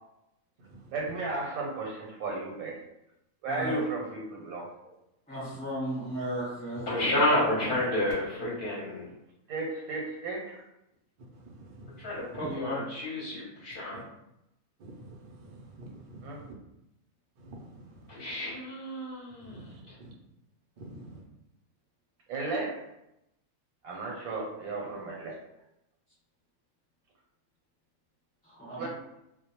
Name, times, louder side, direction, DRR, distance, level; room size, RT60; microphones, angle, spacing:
voice 1, 0.9-2.8 3.4-4.7 9.5-10.6 16.2-16.4 22.3-22.8 23.8-25.4 28.8-28.9, right 3 dB, 90° right, -1 dB, 1.1 m, -34 dB
voice 2, 3.5-3.8 5.3-6.9 12.4-12.8 28.4-28.9, equal, 5° left, -9 dB, 1.0 m, -35 dB
voice 3, 6.9-9.1 12.0-14.0 18.1-20.0 24.8-25.0, left 1 dB, 50° left, -6 dB, 0.7 m, -30 dB
voice 4, 11.3-12.6 13.9-14.0 14.8-16.5 17.4-18.1 19.4-20.1 20.8-21.2, right 2 dB, 65° right, -1 dB, 0.5 m, -48 dB
2.2 x 2.1 x 2.8 m, 0.86 s
omnidirectional pair, 1.5 m